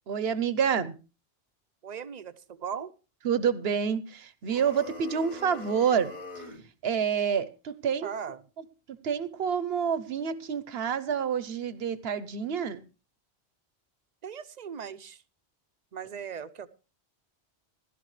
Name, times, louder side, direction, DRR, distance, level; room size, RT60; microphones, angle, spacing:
voice 1, 0.1-0.9 3.2-6.1 6.8-8.1 9.0-12.8, right 7 dB, 65° right, 1.1 m, -28 dB
voice 2, 1.8-2.9 8.0-8.5 14.2-15.2 15.9-16.7, right 7 dB, 45° right, 0.8 m, -38 dB
sound 1, 4.4-6.7, left 2 dB, 40° left, 1.8 m, -43 dB
16.0 x 12.0 x 3.2 m
omnidirectional pair, 1.1 m